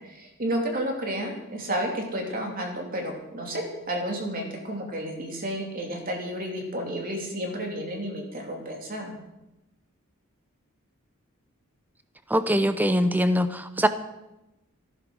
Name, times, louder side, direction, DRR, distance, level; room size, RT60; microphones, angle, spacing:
voice 1, 0.0-9.2, right 1 dB, 40° right, 1 dB, 3.1 m, -31 dB
voice 2, 12.3-13.9, equal, 10° right, 11 dB, 0.7 m, -22 dB
15.0 x 11.0 x 6.3 m, 0.95 s
head